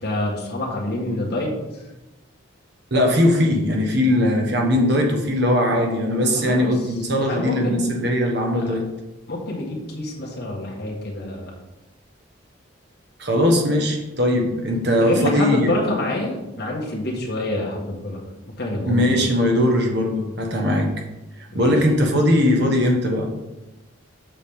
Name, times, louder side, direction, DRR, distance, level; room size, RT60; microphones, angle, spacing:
voice 1, 0.0-1.8 6.3-6.9 7.2-7.9 8.6-8.8 9.3-11.5 15.0-18.2 18.5-19.3 21.5-21.7, left 1 dB, 50° left, -4 dB, 1.5 m, -27 dB
voice 2, 2.9-8.9 13.2-15.7 18.9-20.9 21.5-23.3, left 1 dB, 50° right, 1 dB, 1.3 m, -20 dB
7.2 x 5.7 x 3.6 m, 1.0 s
head